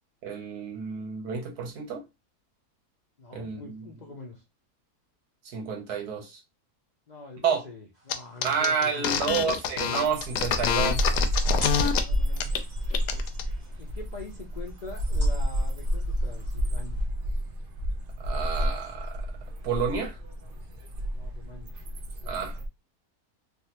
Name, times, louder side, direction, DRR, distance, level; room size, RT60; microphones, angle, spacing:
voice 1, 0.2-2.0 3.3-3.9 5.4-6.4 7.4-7.6 8.4-11.0 18.2-19.2 19.6-20.2 22.3-22.6, right 6 dB, 80° right, 1.3 m, -29 dB
voice 2, 3.2-4.4 7.1-9.6 11.9-12.6 13.8-17.1 21.1-21.8, left 3 dB, 75° left, 0.4 m, -43 dB
sound 1, 7.9-17.1, right 1 dB, 30° right, 1.2 m, -50 dB
sound 2, 8.1-8.2 8.4-12.0 12.4-12.6 12.9-13.4, left 8 dB, 90° left, 1.1 m, -26 dB
sound 3, 10.0-22.7, equal, 60° right, 0.5 m, -30 dB
3.3 x 2.4 x 2.8 m
omnidirectional pair, 1.7 m